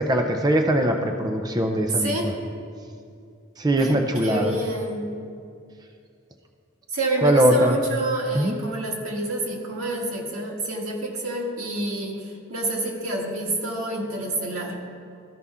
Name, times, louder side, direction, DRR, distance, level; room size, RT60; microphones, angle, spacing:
voice 1, 0.0-2.2 3.6-4.5 7.2-7.8 8.3-8.6, right 1 dB, 20° right, 4 dB, 0.5 m, -21 dB
voice 2, 2.0-2.4 3.8-5.1 6.9-14.8, right 2 dB, 90° right, -1 dB, 1.6 m, -28 dB
13.5 x 5.6 x 3.6 m, 2.4 s
head